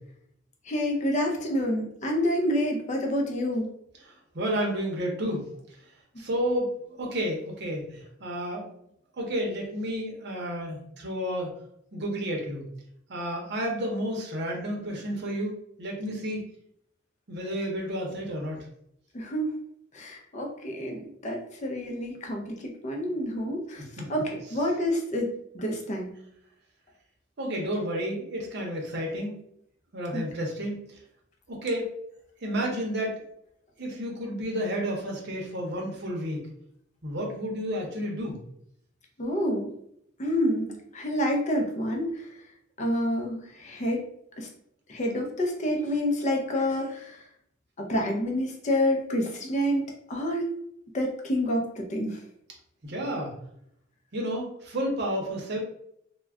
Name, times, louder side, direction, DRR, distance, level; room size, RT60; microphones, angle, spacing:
voice 1, 0.7-3.6 19.1-19.5 19.9-22.6 22.8-23.8 24.1-25.3 25.5-26.1 30.1-30.2 39.2-39.7 40.2-42.1 42.8-44.0 44.4-44.5 44.9-47.2 47.8-50.4 50.9-52.2, equal, 35° left, 1 dB, 0.5 m, -28 dB
voice 2, 4.0-5.5 6.2-8.6 9.2-11.5 11.9-12.6 13.1-16.4 17.3-18.6 23.8-24.2 27.4-29.4 29.9-30.8 31.5-31.9 32.4-33.1 33.8-36.5 37.0-38.4 52.8-53.3 54.1-55.6, equal, 55° right, 0 dB, 0.7 m, -31 dB
2.3 x 2.1 x 3.4 m, 0.73 s
head